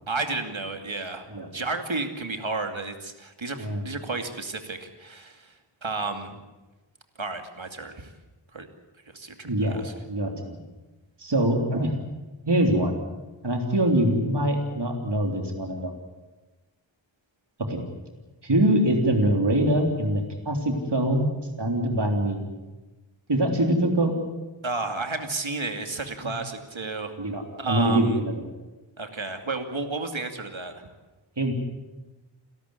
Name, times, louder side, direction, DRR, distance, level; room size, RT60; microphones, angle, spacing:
voice 1, 0.1-5.6 5.8-6.3 7.2-8.1 8.5-8.7 9.1-9.9 24.6-27.2 27.6-28.2 29.0-30.9, right 3 dB, 75° right, 6 dB, 2.6 m, -32 dB
voice 2, 9.4-9.8 10.1-10.6 11.2-11.9 12.5-13.0 13.4-15.9 17.6-17.8 18.4-21.3 21.6-22.4 23.3-24.1 27.2-28.4 31.4-31.5, right 1 dB, 60° right, 3 dB, 3.5 m, -23 dB
30.0 x 13.5 x 9.7 m, 1.1 s
wide cardioid pair, 45°, 47 cm